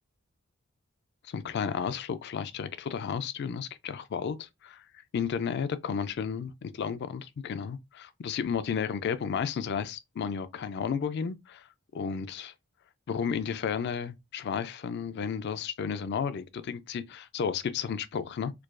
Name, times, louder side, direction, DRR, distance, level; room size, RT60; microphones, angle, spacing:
voice 1, 1.2-4.8 5.1-11.7 11.9-12.5 13.1-18.5, left 6 dB, 50° left, 0.3 m, -33 dB
4.5 x 2.3 x 2.4 m
head